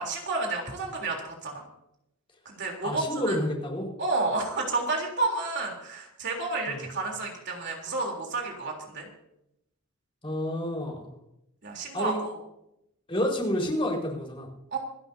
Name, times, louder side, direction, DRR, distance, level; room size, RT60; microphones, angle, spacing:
voice 1, 0.0-1.6 2.5-3.4 4.0-9.1 11.6-12.4 14.7-14.8, right 3 dB, 50° right, 0 dB, 3.5 m, -30 dB
voice 2, 2.8-3.9 6.7-6.8 10.2-11.1 11.9-12.2 13.1-14.5, equal, 25° left, -1 dB, 4.8 m, -29 dB
27.5 x 12.0 x 2.8 m, 0.82 s
head